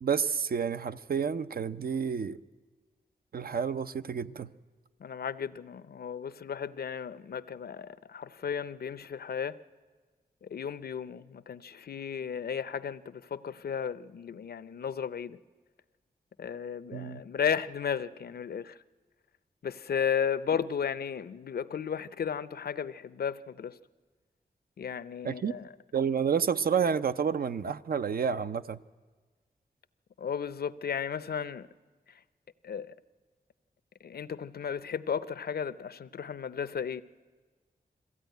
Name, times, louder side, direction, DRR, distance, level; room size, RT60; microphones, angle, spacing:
voice 1, 0.0-2.4 3.3-4.5 16.9-17.2 25.2-25.5 25.9-28.8, right 6 dB, 70° right, 0.6 m, -29 dB
voice 2, 5.0-9.6 10.4-15.4 16.4-18.8 19.6-23.8 24.8-25.7 30.2-31.7 32.6-32.9 34.0-37.0, left 7 dB, 75° left, 0.6 m, -34 dB
21.5 x 15.0 x 9.2 m
wide cardioid pair, 70°, 16 cm